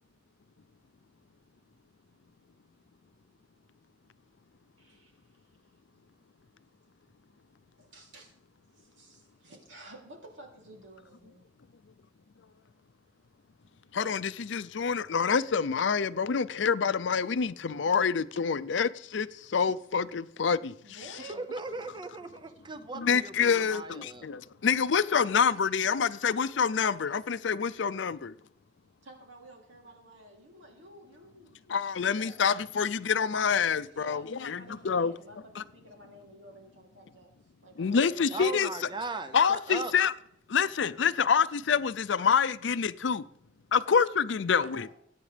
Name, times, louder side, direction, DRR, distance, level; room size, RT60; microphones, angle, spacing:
voice 1, 4.8-5.3 7.8-8.3 8.7-11.5 20.8-21.4 25.8-26.2 26.8-26.9 29.0-31.6 32.0-32.4 33.8-37.3 37.6-38.6 44.6-44.9, right 2 dB, 90° right, 3.1 m, -51 dB
voice 2, 13.9-20.8 22.9-28.3 31.7-35.1 35.6-35.7 37.8-38.9 39.3-40.1 40.5-43.2 43.7-44.9, left 6 dB, 75° left, 0.5 m, -27 dB
voice 3, 21.3-24.3 38.3-39.9, right 3 dB, 25° right, 0.5 m, -38 dB
21.0 x 9.4 x 3.4 m
head